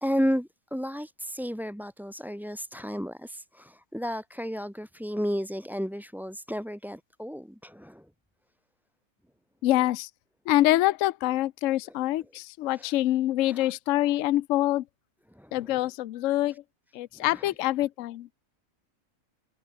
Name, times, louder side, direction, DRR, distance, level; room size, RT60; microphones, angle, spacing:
voice 1, 0.0-8.1 12.7-13.0 13.4-13.7 15.3-15.8 16.5-16.6 17.1-17.5, equal, ahead, 2.6 m, -33 dB
voice 2, 9.6-10.1 10.5-14.8 15.5-16.6 16.9-18.3, left 15 dB, 70° left, 0.9 m, -25 dB
omnidirectional pair, 1.6 m